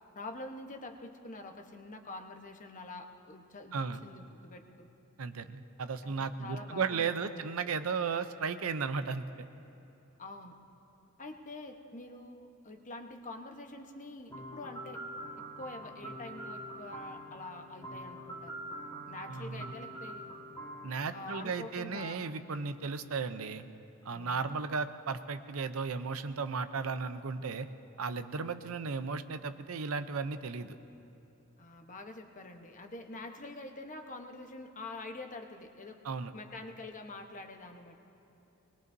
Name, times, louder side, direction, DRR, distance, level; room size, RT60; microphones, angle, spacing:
voice 1, 0.1-4.9 6.0-7.5 10.2-10.6 11.2-15.0 15.6-18.6 19.0-20.2 21.1-22.2 24.1-24.6 31.6-36.0 36.3-38.0, left 2 dB, 40° left, 5 dB, 1.0 m, -46 dB
voice 2, 3.7-4.0 5.2-9.5 19.3-19.7 20.8-23.6 24.0-27.7 28.0-30.7 36.0-36.3, right 5 dB, 90° right, 11 dB, 0.6 m, -35 dB
sound 1, 14.3-22.2, right 1 dB, 15° left, 1.4 m, -45 dB
21.0 x 21.0 x 2.7 m, 3.0 s
head